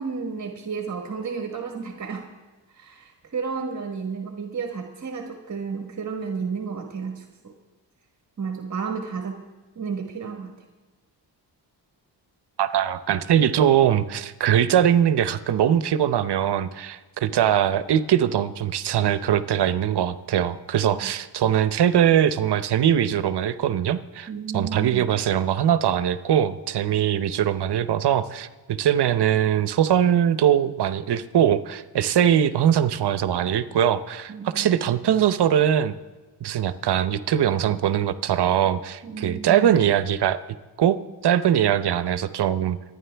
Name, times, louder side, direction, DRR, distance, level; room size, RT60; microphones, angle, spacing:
voice 1, 0.0-2.3 2.7-7.5 8.4-9.4 9.7-10.5 20.9-21.1 24.3-25.0 34.3-34.9 39.0-39.8, right 5 dB, 40° right, 2 dB, 1.4 m, -32 dB
voice 2, 12.6-24.3 24.5-35.9 36.4-40.4 40.8-41.0 41.2-42.8, right 10 dB, 65° right, 13 dB, 0.8 m, -21 dB
26.5 x 9.8 x 3.4 m, 1.2 s
cardioid pair, 85°, 43 cm